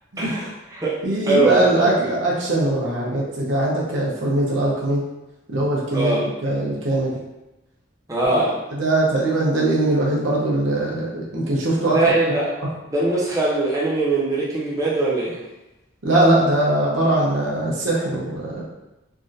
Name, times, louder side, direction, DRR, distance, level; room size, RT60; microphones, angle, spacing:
voice 1, 0.2-1.0 1.3-2.1 5.9-6.2 8.1-8.6 11.9-12.5 12.9-15.4, right 2 dB, 15° right, -6 dB, 0.5 m, -21 dB
voice 2, 1.0-5.0 5.5-7.2 8.3-12.0 12.3-12.4 16.0-18.6, right 1 dB, 75° right, -4 dB, 0.8 m, -21 dB
3.4 x 2.5 x 2.6 m, 0.98 s
head